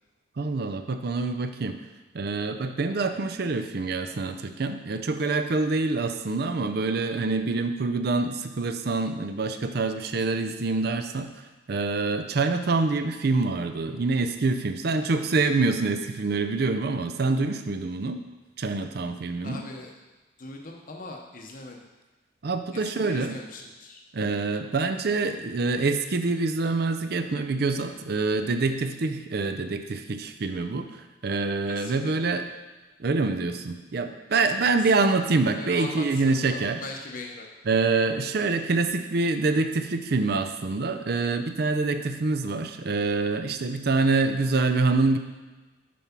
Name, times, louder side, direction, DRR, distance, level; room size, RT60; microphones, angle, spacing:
voice 1, 0.4-1.8 2.1-11.3 11.7-18.2 18.6-19.6 22.4-23.4 24.1-32.5 33.0-36.8 37.7-45.2, right 3 dB, 55° right, 8 dB, 0.5 m, -26 dB
voice 2, 19.4-19.9 20.4-21.8 22.7-24.0 31.3-32.4 34.5-34.9 35.5-37.5, left 3 dB, 45° left, 0 dB, 0.8 m, -41 dB
7.0 x 4.7 x 5.8 m, 1.2 s
head